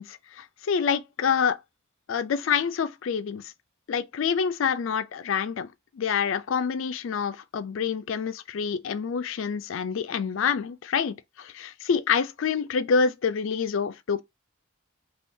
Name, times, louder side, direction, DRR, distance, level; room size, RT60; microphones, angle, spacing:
voice 1, 0.0-1.6 2.1-3.5 3.9-5.7 5.9-14.2, left 6 dB, 65° left, 0.4 m, -27 dB
3.5 x 2.4 x 2.7 m
head